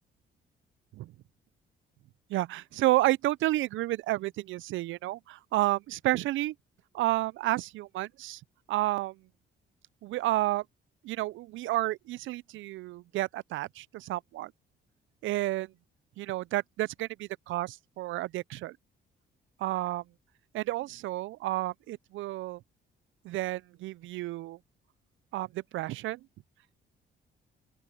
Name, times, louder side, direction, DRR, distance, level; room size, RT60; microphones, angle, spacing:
voice 1, 2.3-6.5 6.9-8.4 8.7-9.2 10.0-10.6 11.0-14.5 15.2-15.7 16.2-18.8 19.6-20.0 20.5-22.6 23.2-24.6 25.3-26.2, right 17 dB, 75° right, 0.4 m, -31 dB
open air
cardioid pair, 90°, 20 cm